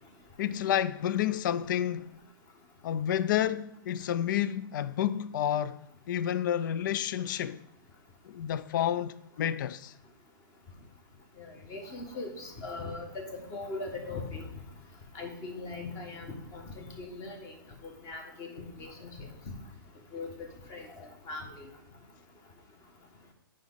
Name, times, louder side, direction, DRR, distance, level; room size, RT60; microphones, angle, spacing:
voice 1, 0.4-2.1 2.8-7.6 8.3-9.9, left 10 dB, 60° left, 0.4 m, -30 dB
voice 2, 11.4-14.4 15.1-17.5 17.8-19.3 20.1-21.7, left 3 dB, 25° left, 1.7 m, -40 dB
10.0 x 5.2 x 4.1 m
hypercardioid pair, 140°, 12 cm